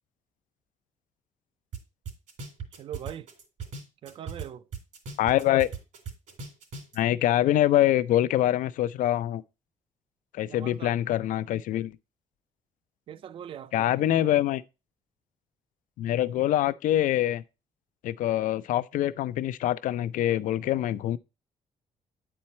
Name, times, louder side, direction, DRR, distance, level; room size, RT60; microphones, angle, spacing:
sound 1, 1.7-1.8 2.1-4.5 4.7-7.0, right 5 dB, 70° right, 2.6 m, -38 dB
voice 1, 2.8-3.3 4.0-4.6 10.5-11.0 13.1-13.9, right 10 dB, 40° right, 0.4 m, -41 dB
voice 2, 5.2-5.7 7.0-9.4 10.3-11.9 13.7-14.6 16.0-17.4 18.0-21.2, left 13 dB, 85° left, 0.5 m, -24 dB
9.4 x 4.4 x 4.3 m
cardioid pair, 175°, 13 cm